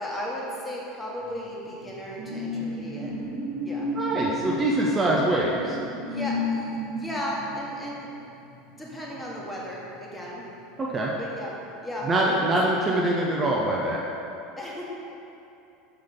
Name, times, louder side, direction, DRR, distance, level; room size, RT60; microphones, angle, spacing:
voice 1, 0.0-3.1 3.6-3.9 6.1-8.1 8.8-10.4 11.2-11.6 11.8-12.6 14.6-14.9, equal, 10° left, -4 dB, 1.4 m, -35 dB
sound 1, 1.3-10.3 10.6-10.9, left 1 dB, 60° right, 0.8 m, -33 dB
voice 2, 4.0-5.8 10.8-11.1 12.0-14.0, right 1 dB, 25° right, -3 dB, 0.7 m, -24 dB
6.3 x 5.9 x 3.6 m, 2.8 s
figure-of-eight pair, 75°, 0 cm